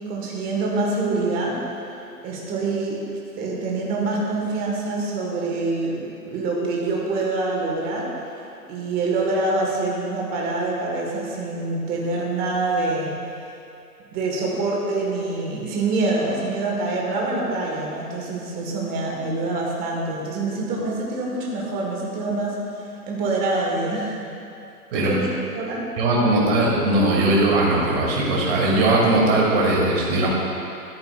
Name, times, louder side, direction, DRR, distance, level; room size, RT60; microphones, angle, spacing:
voice 1, 0.1-1.6 2.2-3.0 3.4-8.1 8.7-13.1 14.1-22.6 23.0-24.2 24.9-25.9, right 3 dB, 20° right, -3 dB, 1.3 m, -25 dB
voice 2, 26.0-30.3, right 2 dB, 40° right, -4 dB, 2.3 m, -19 dB
13.0 x 10.5 x 2.3 m, 2.7 s
hypercardioid pair, 135°, 47 cm